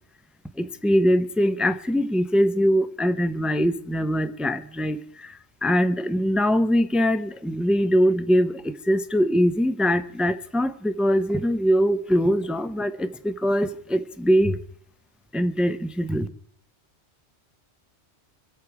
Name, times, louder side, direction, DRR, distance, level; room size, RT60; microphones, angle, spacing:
voice 1, 0.6-14.6 15.3-16.3, equal, ahead, 0.6 m, -22 dB
25.0 x 8.4 x 4.7 m
omnidirectional pair, 1.2 m